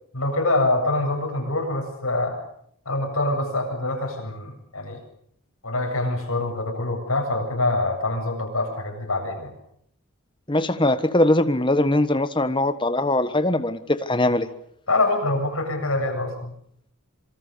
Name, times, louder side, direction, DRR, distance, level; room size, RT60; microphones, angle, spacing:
voice 1, 0.1-2.4 2.8-5.0 5.6-9.5 14.9-16.5, left 2 dB, 75° left, 2 dB, 7.9 m, -25 dB
voice 2, 10.5-14.5, left 1 dB, 20° left, 11 dB, 1.3 m, -21 dB
26.0 x 24.5 x 7.0 m, 0.68 s
head